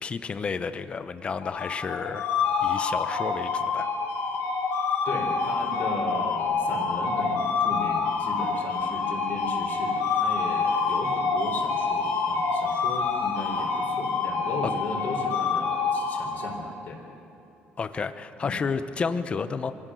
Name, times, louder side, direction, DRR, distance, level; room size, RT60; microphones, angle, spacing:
voice 1, 0.0-2.3 2.6-3.9 17.8-19.7, left 5 dB, 30° left, 11 dB, 0.9 m, -31 dB
sound 1, 1.4-16.7, left 4 dB, 90° left, 3.1 m, -27 dB
voice 2, 5.0-17.0 18.4-18.6, left 3 dB, 55° left, -1 dB, 4.0 m, -36 dB
24.5 x 17.5 x 6.4 m, 2.7 s
cardioid pair, 130°, 4 cm